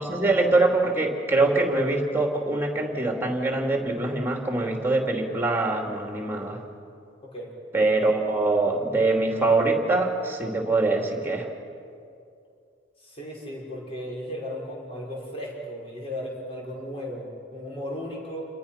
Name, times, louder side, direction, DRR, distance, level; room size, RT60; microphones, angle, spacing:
voice 1, 0.0-6.6 7.7-11.4, right 2 dB, 10° right, 2 dB, 2.8 m, -23 dB
voice 2, 7.2-7.5 13.0-18.5, equal, 30° left, -3 dB, 5.8 m, -35 dB
29.0 x 21.5 x 5.9 m, 2.5 s
head